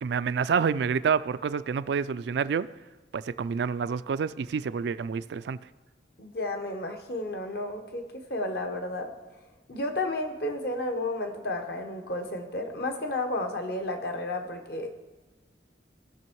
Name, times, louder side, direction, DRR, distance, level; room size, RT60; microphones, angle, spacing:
voice 1, 0.0-2.7 3.1-5.6, right 6 dB, 70° right, 15 dB, 0.3 m, -28 dB
voice 2, 6.2-9.1 9.7-15.0, left 2 dB, 60° left, 5 dB, 1.2 m, -32 dB
17.5 x 6.3 x 4.6 m, 1.2 s
head